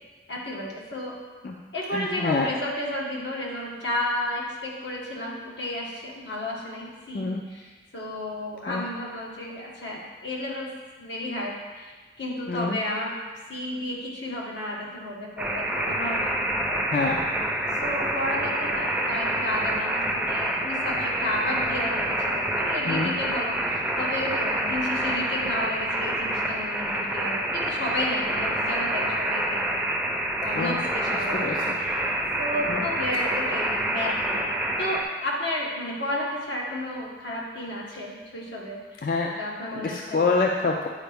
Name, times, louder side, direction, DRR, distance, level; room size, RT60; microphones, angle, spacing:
voice 1, 0.3-1.2 1.7-10.7 11.0-13.1 13.5-16.8 17.8-29.8 30.4-32.0 32.4-34.5 34.8-39.0 39.4-40.2, left 1 dB, 85° left, -3 dB, 1.5 m, -32 dB
voice 2, 1.9-2.5 7.1-7.4 8.7-8.8 12.5-12.8 16.9-17.2 22.9-23.1 30.5-30.8 31.1-31.8 32.7-32.9 39.0-39.3 39.7-40.9, left 3 dB, 50° left, 0 dB, 0.4 m, -26 dB
sound 1, 15.4-35.0, right 1 dB, 5° right, 0.5 m, -27 dB
8.8 x 4.6 x 3.5 m, 1.3 s
head